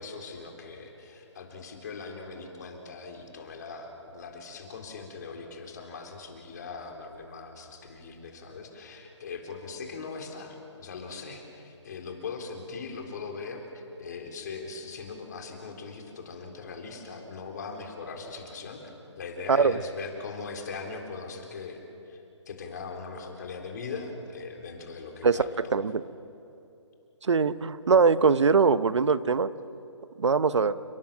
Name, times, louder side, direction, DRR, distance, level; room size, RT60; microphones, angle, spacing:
voice 1, 0.0-25.8, left 4 dB, 35° left, 2 dB, 3.7 m, -40 dB
voice 2, 19.5-19.8 25.2-25.4 25.7-26.0 27.2-29.5 30.2-30.7, right 5 dB, 65° right, 14 dB, 1.1 m, -22 dB
29.5 x 19.0 x 7.4 m, 2.7 s
hypercardioid pair, 170°, 16 cm